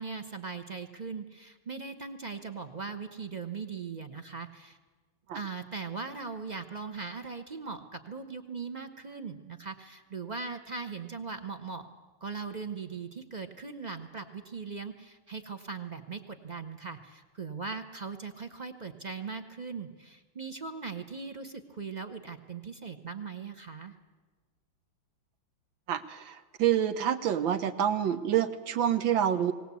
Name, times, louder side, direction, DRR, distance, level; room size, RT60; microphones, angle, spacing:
voice 1, 0.0-4.8 5.3-11.9 12.2-23.9, right 5 dB, 40° right, 7 dB, 0.6 m, -39 dB
voice 2, 25.9-29.5, right 10 dB, 75° right, 10 dB, 1.7 m, -27 dB
20.5 x 18.0 x 8.3 m, 1.3 s
omnidirectional pair, 2.2 m